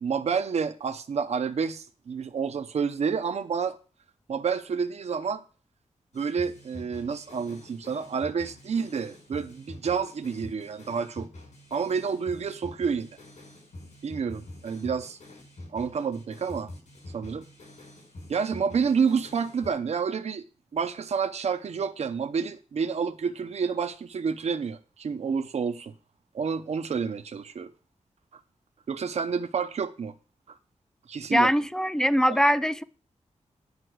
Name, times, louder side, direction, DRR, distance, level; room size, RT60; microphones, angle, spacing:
voice 1, 0.0-3.8 4.3-5.4 6.1-11.3 11.7-13.1 14.0-15.2 15.7-16.7 17.1-17.4 18.3-20.4 20.7-25.9 26.3-27.7 28.9-30.1 31.1-31.5, right 6 dB, 60° right, 0.7 m, -29 dB
sound 1, 6.1-19.7, left 1 dB, 80° left, 5.6 m, -46 dB
voice 2, 31.3-32.8, equal, 5° left, 0.4 m, -22 dB
9.7 x 5.7 x 6.2 m
wide cardioid pair, 165°, 12 cm